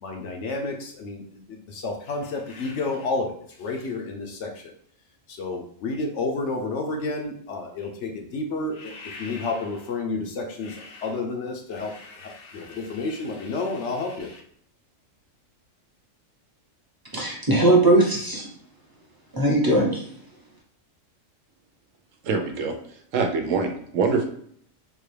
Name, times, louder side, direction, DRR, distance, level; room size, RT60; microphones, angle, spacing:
voice 1, 0.0-1.2 1.5-4.7 5.3-14.4, left 3 dB, 65° left, 2 dB, 0.9 m, -30 dB
voice 2, 17.1-18.5 19.3-20.1, right 2 dB, 20° right, -3 dB, 0.6 m, -19 dB
voice 3, 22.2-22.7 23.1-24.2, right 4 dB, 75° right, 4 dB, 1.0 m, -24 dB
3.6 x 2.4 x 3.2 m, 0.62 s
omnidirectional pair, 1.4 m